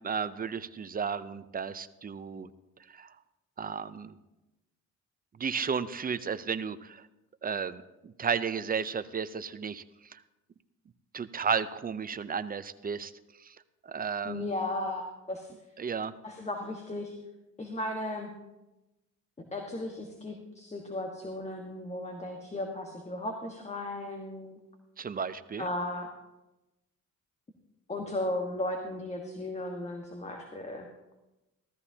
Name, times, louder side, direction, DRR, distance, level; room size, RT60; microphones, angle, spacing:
voice 1, 0.0-2.5 2.9-3.1 3.6-4.2 5.4-7.1 7.4-9.8 10.1-10.2 11.1-13.1 13.4-13.6 13.8-14.5 15.8-16.1 25.0-25.7, right 6 dB, 30° right, 13 dB, 0.6 m, -33 dB
voice 2, 14.2-15.0 15.3-15.5 16.2-17.1 17.6-18.3 19.5-24.6 25.6-26.1 27.9-30.9, left 1 dB, 20° left, 3 dB, 1.4 m, -35 dB
15.5 x 14.0 x 2.8 m, 0.99 s
cardioid pair, 90°, 30 cm